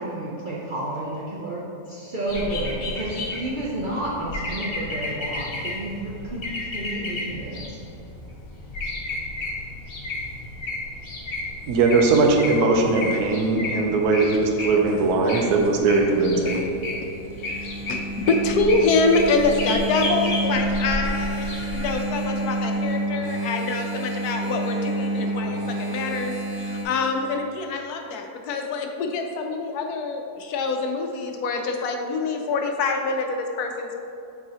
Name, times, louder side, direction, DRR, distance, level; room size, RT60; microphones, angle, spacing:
voice 1, 0.0-1.6 1.9-6.4 6.7-7.7, right 1 dB, 60° right, -5 dB, 0.5 m, -30 dB
sound 1, 2.3-21.9, left 2 dB, 45° left, 0.9 m, -32 dB
voice 2, 11.7-16.6, right 3 dB, 80° right, 2 dB, 1.2 m, -20 dB
Engine, 15.4-26.8, right 1 dB, 30° right, 0.9 m, -29 dB
voice 3, 17.4-34.0, left 3 dB, 75° left, 3 dB, 1.1 m, -25 dB
7.5 x 4.7 x 2.8 m, 2.8 s
omnidirectional pair, 1.7 m